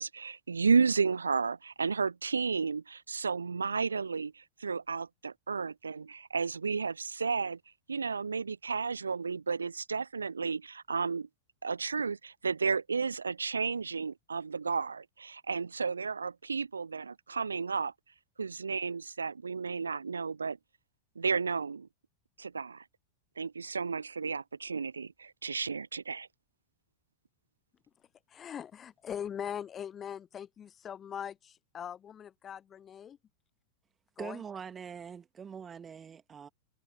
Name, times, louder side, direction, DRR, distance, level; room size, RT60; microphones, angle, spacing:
voice 1, 0.0-7.6 7.9-11.3 11.6-17.9 18.4-20.6 21.2-21.9 22.4-22.8 23.4-26.3, right 5 dB, 75° right, 0.7 m, -32 dB
voice 2, 28.3-33.2 34.2-34.4, left 9 dB, 25° left, 0.8 m, -41 dB
voice 3, 34.2-36.5, right 7 dB, 20° right, 2.3 m, -43 dB
figure-of-eight pair, 90°, 0 cm